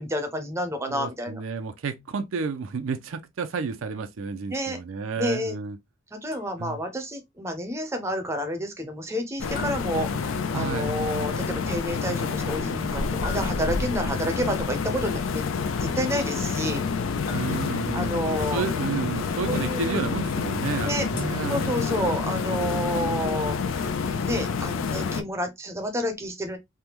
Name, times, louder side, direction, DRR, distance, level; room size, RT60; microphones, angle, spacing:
voice 1, 0.0-1.4 4.5-4.8 5.2-5.6 6.1-15.4 15.8-16.8 17.9-18.7 19.5-20.0 20.8-21.1 21.5-23.9 24.2-26.6, equal, 15° right, 0.5 m, -29 dB
voice 2, 0.9-5.8 6.6-6.8 10.5-11.0 17.3-18.1 18.5-21.7, right 5 dB, 75° right, 0.5 m, -31 dB
sound 1, 6.3-6.9 9.6-10.8 13.2-14.1 17.3-18.1 21.2-22.2, left 4 dB, 45° left, 0.8 m, -43 dB
sound 2, 9.4-25.2, left 5 dB, 75° left, 0.4 m, -28 dB
3.3 x 2.1 x 2.9 m
head